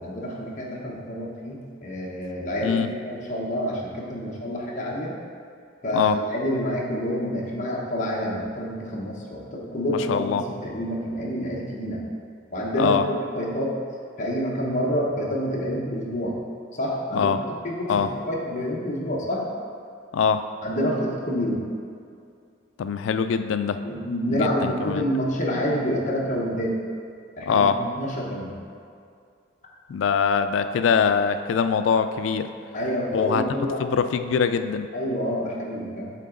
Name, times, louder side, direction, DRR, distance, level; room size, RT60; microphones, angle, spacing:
voice 1, 0.0-5.1 5.8-12.0 12.5-13.7 14.2-16.3 16.7-17.3 17.6-19.4 20.6-21.6 23.8-26.8 27.4-28.6 32.7-33.8 34.9-36.1, equal, 45° left, -3 dB, 1.0 m, -28 dB
voice 2, 9.9-10.4 12.8-13.0 17.1-17.4 17.9-18.1 20.1-20.4 22.8-23.8 24.3-25.0 27.5-27.8 29.9-32.5 33.1-33.4 33.8-34.9, left 6 dB, 85° left, 10 dB, 0.3 m, -23 dB
7.5 x 3.8 x 3.8 m, 2.3 s
head